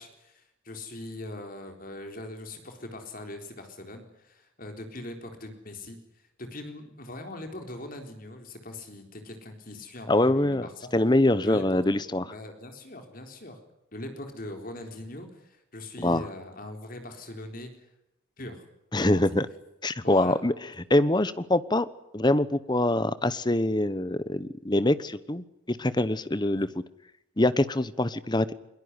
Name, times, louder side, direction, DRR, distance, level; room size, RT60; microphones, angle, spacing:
voice 1, 0.0-6.0 6.4-10.9 11.4-11.8 12.2-13.6 13.9-17.7 18.4-18.6 19.0-19.3 20.0-20.4 26.5-26.7, left 1 dB, 45° left, 5 dB, 4.1 m, -41 dB
voice 2, 10.1-10.7 10.9-12.2 16.0-16.2 18.9-19.5 19.8-21.8 22.1-26.7 27.4-28.5, left 1 dB, 20° left, 15 dB, 1.0 m, -24 dB
22.5 x 21.5 x 9.8 m, 0.84 s
head